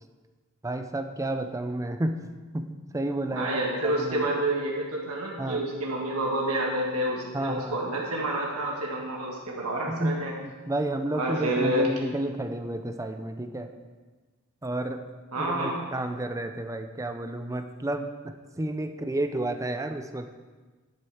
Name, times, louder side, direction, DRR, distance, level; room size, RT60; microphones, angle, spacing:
voice 1, 0.6-2.2 2.5-3.6 3.8-4.4 5.4-5.6 7.3-7.8 9.9-13.7 14.6-15.0 15.4-20.4, right 1 dB, 15° right, 7 dB, 0.6 m, -31 dB
voice 2, 3.3-10.3 11.1-11.9 15.3-15.8, right 1 dB, 80° right, -2 dB, 1.7 m, -28 dB
11.0 x 7.4 x 4.9 m, 1.3 s
head